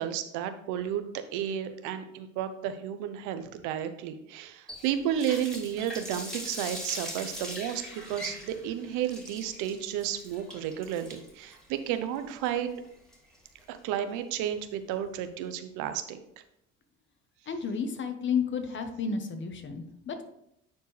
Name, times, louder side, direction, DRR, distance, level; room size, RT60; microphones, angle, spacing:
voice 1, 0.0-7.8 8.1-12.7 13.7-16.2, right 10 dB, 90° right, 10 dB, 0.8 m, -32 dB
Water tap faucet, 4.7-13.6, equal, ahead, 2.8 m, -41 dB
voice 2, 17.5-20.2, left 6 dB, 40° left, 7 dB, 1.1 m, -32 dB
9.5 x 4.5 x 3.3 m, 0.78 s
cardioid pair, 100°, 29 cm